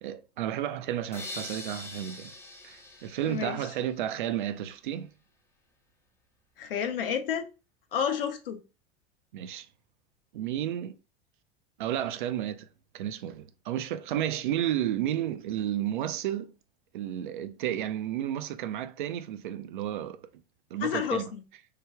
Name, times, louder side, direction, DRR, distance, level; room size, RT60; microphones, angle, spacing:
voice 1, 0.0-2.3 2.6-5.1 9.3-9.7 10.3-11.0 11.8-12.7 12.9-16.5 16.9-20.2 20.7-21.3, right 11 dB, 55° right, 0.4 m, -32 dB
sound 1, 1.1-4.1, left 2 dB, 10° left, 0.5 m, -43 dB
voice 2, 3.2-3.6 6.6-7.5 7.9-8.6 20.8-21.4, left 7 dB, 65° left, 0.6 m, -30 dB
3.2 x 2.3 x 3.4 m
figure-of-eight pair, 85°, 30 cm